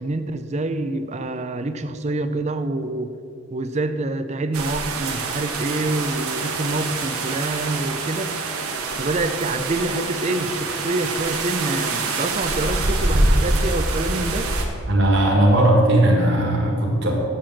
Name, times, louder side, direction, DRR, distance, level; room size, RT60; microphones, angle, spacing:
voice 1, 0.0-3.1 3.5-8.3 9.0-14.5, right 2 dB, 30° right, 10 dB, 0.5 m, -26 dB
sound 1, 4.5-14.7, right 2 dB, 85° right, 1.3 m, -25 dB
voice 2, 14.9-17.1, right 1 dB, 50° right, -2 dB, 1.6 m, -17 dB
7.7 x 6.8 x 7.3 m, 2.5 s
head